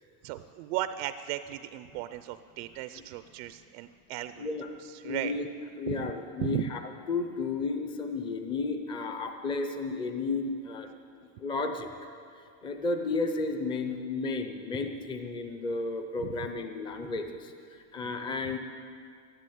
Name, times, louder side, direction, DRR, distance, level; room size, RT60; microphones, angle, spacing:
voice 1, 0.2-4.5 5.0-5.3 5.9-6.1 6.4-6.7 16.2-16.3 18.0-18.1, right 14 dB, 50° right, 11 dB, 0.5 m, -36 dB
voice 2, 4.4-4.7 5.0-5.5 5.8-10.9 11.4-11.9 12.3-18.6, left 3 dB, 10° left, 6 dB, 0.5 m, -33 dB
13.5 x 11.5 x 9.3 m, 2.4 s
cardioid pair, 175°, 42 cm